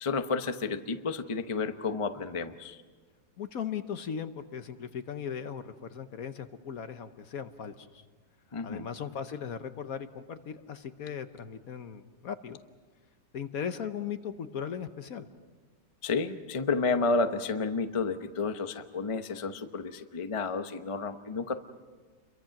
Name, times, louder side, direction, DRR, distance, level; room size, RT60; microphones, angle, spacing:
voice 1, 0.0-2.8 8.5-8.9 16.0-21.5, left 4 dB, 30° left, 8 dB, 0.6 m, -31 dB
voice 2, 3.4-8.0 8.6-12.6 13.3-15.3, left 7 dB, 55° left, 9 dB, 1.2 m, -38 dB
29.5 x 23.0 x 5.9 m, 1.4 s
omnidirectional pair, 2.0 m